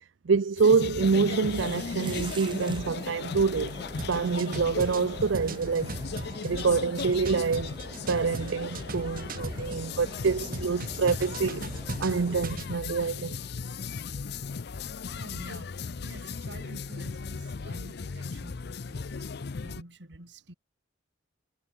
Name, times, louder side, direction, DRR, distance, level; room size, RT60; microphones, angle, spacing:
voice 1, 0.2-3.8 4.1-6.0 6.4-7.8 8.1-11.7 12.0-13.4, right 5 dB, 80° right, 0.5 m, -26 dB
sound 1, 0.6-19.8, left 5 dB, 60° left, 0.6 m, -37 dB
sound 2, 1.3-12.4, right 2 dB, 25° right, 6.5 m, -45 dB
sound 3, 4.0-9.9 10.3-12.7, right 2 dB, 50° right, 3.2 m, -38 dB
voice 2, 15.1-20.5, right 1 dB, 65° right, 4.3 m, -48 dB
head